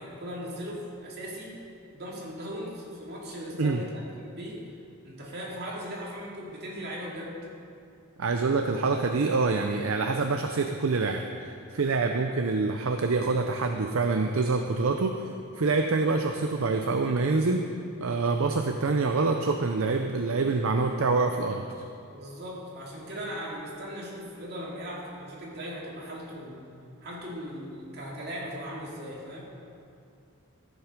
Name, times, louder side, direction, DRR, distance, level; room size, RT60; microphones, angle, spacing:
voice 1, 0.0-1.6 1.9-3.9 4.2-4.7 5.0-7.4 22.1-26.6 27.0-29.5, equal, 50° right, -4 dB, 2.3 m, -38 dB
voice 2, 8.2-15.2 15.6-17.6 18.0-21.6, right 3 dB, 65° right, 5 dB, 0.6 m, -26 dB
14.0 x 7.3 x 5.2 m, 2.5 s
head